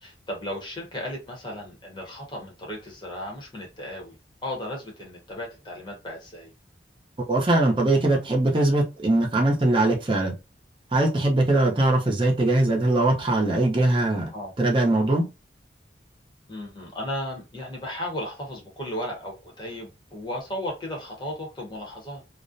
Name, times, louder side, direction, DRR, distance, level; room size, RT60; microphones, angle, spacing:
voice 1, 0.0-4.2 4.4-6.5 14.3-14.5 16.5-22.2, left 1 dB, 25° left, 0.8 m, -35 dB
voice 2, 7.3-10.3 10.9-14.3 14.6-15.3, right 2 dB, 30° right, 0.6 m, -21 dB
2.4 x 2.0 x 2.5 m
head